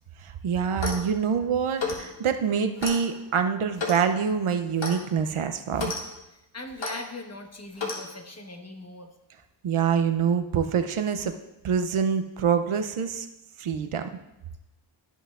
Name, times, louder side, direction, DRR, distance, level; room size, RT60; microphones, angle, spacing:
voice 1, 0.2-5.9 9.6-11.3 11.6-13.3 13.6-14.0, right 7 dB, 80° right, 8 dB, 0.7 m, -25 dB
Clock, 0.7-1.1 1.8-2.1 2.8-3.0 3.8-4.0 4.8-5.0 5.7-6.0 6.8-7.0 7.8-8.0, left 3 dB, 65° left, 1.4 m, -31 dB
voice 2, 6.3-9.1, left 2 dB, 30° left, 4 dB, 1.1 m, -40 dB
13.5 x 5.5 x 2.4 m, 0.95 s
cardioid pair, 50°, 49 cm